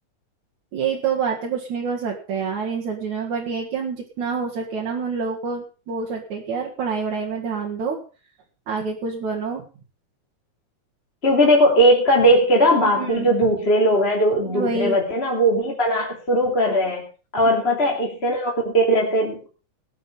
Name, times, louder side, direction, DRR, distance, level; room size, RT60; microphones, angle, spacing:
voice 1, 0.7-8.0 8.7-9.6 12.7-13.3 14.4-15.0 17.4-17.5, right 5 dB, 70° right, -1 dB, 3.3 m, -27 dB
voice 2, 11.2-17.1 17.3-19.5, equal, 20° left, -2 dB, 2.9 m, -19 dB
19.0 x 7.8 x 5.5 m, 0.36 s
omnidirectional pair, 3.5 m